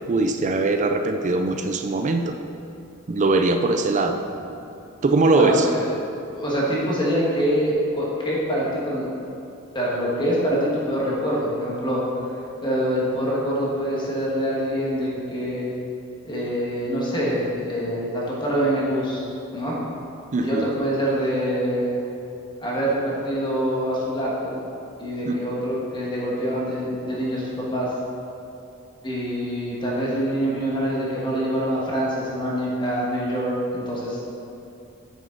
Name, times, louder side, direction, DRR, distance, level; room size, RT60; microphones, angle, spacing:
voice 1, 0.0-2.3 3.1-4.2 5.0-5.7 20.3-20.7 25.3-25.4, right 3 dB, 35° right, 6 dB, 0.4 m, -21 dB
voice 2, 5.4-5.9 6.3-9.1 9.7-12.0 12.6-15.7 16.2-19.2 19.5-19.7 20.4-22.0 22.6-24.6 25.0-27.9 29.0-34.2, equal, 20° left, -5 dB, 1.5 m, -25 dB
8.9 x 6.5 x 3.9 m, 2.7 s
head